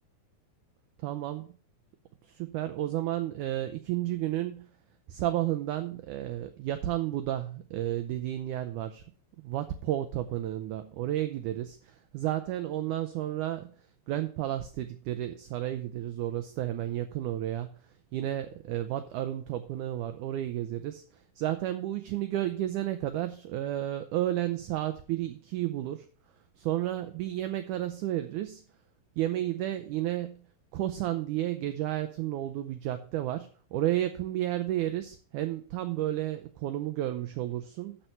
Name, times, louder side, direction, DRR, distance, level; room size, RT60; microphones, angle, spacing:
voice 1, 1.0-1.5 2.3-4.7 5.1-9.0 9.4-13.7 14.1-17.8 18.1-21.0 21.4-26.1 26.6-28.6 29.2-30.4 30.7-38.0, right 13 dB, 90° right, 10 dB, 1.7 m, -32 dB
12.0 x 4.5 x 5.3 m, 0.42 s
omnidirectional pair, 4.2 m